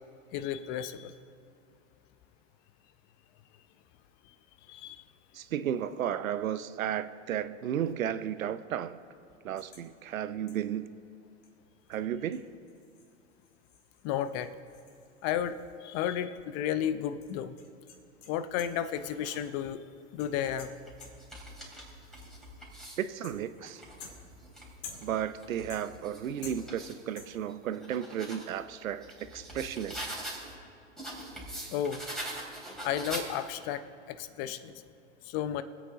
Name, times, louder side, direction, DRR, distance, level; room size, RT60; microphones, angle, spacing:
voice 1, 0.3-1.1 4.7-5.0 14.0-14.5 15.2-17.6 18.3-19.8 20.1-20.7 31.7-32.0 32.8-34.7 35.2-35.6, left 10 dB, 40° left, 12 dB, 0.7 m, -33 dB
voice 2, 5.3-9.0 9.4-10.9 11.9-12.5 23.0-23.8 25.0-30.1, right 9 dB, 85° right, 13 dB, 0.7 m, -34 dB
sound 1, 9.6-9.9 10.5-10.8 11.4-11.5 11.9-12.0 12.3-16.1 16.3-16.4 17.2-18.9 19.3-19.7 20.2-21.4 22.2-22.6 23.2-23.7 24.0-25.3 25.7-26.2 26.4-26.9 27.2-27.5, left 5 dB, 60° left, 2.1 m, -51 dB
sound 2, 18.7-19.5 20.2-23.1 23.6-27.0 27.5-30.6 31.0-33.7, right 1 dB, ahead, 3.0 m, -44 dB
24.0 x 8.3 x 3.6 m, 2.5 s
hypercardioid pair, 115°, 40 cm